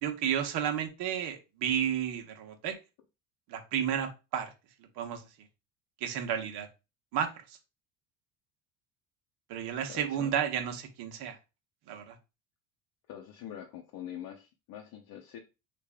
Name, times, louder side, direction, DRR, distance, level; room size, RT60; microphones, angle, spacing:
voice 1, 0.0-2.7 3.5-4.5 5.0-5.2 6.0-6.7 7.1-7.6 9.5-11.4 11.9-12.2, right 9 dB, 65° right, 1.1 m, -32 dB
voice 2, 9.9-10.3 13.1-15.4, left 10 dB, 55° left, 0.7 m, -44 dB
3.3 x 2.5 x 3.5 m
supercardioid pair, 95°, 42 cm